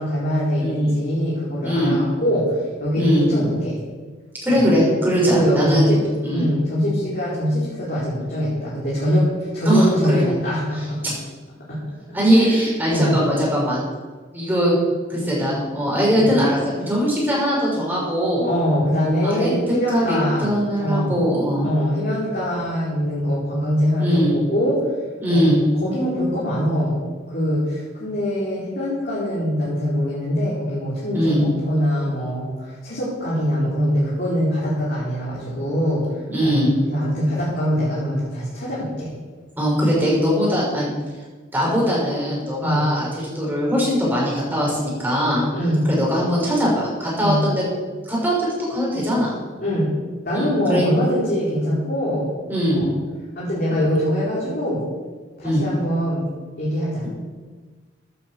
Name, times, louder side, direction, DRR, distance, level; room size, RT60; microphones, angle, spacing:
voice 1, 0.0-3.8 4.5-4.6 5.2-11.1 11.7-11.8 12.4-12.6 12.9-13.2 16.2-16.3 18.4-21.1 21.6-24.9 25.3-27.0 27.3-36.0 36.4-36.6 36.9-39.1 42.6-42.9 45.5-45.9 47.2-47.4 49.6-50.0 50.2-52.3 52.7-52.9 53.3-54.8 55.4-56.3 56.6-57.0, equal, 50° left, -9 dB, 4.9 m, -23 dB
voice 2, 0.6-0.9 1.6-2.0 2.9-3.3 4.4-5.9 6.2-6.5 9.7-10.2 12.1-13.8 14.3-14.7 15.1-18.5 19.2-19.6 19.9-21.7 24.0-24.3 25.2-25.6 31.1-31.4 36.3-36.7 39.6-40.9 41.5-45.4 45.9-47.6 48.1-49.3 50.3-50.9 52.5-52.8 55.4-55.6, equal, 10° right, -5 dB, 5.6 m, -20 dB
13.5 x 9.4 x 8.2 m, 1.4 s
head